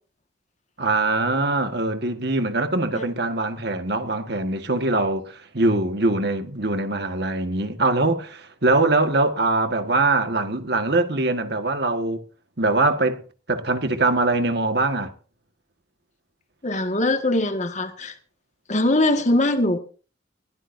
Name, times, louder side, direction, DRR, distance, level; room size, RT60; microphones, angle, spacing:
voice 1, 0.8-12.2 12.6-13.2 13.5-15.1, right 2 dB, 55° right, 1.7 m, -22 dB
voice 2, 16.6-18.2 18.7-19.8, left 1 dB, 40° left, 1.7 m, -21 dB
21.5 x 16.5 x 2.7 m
head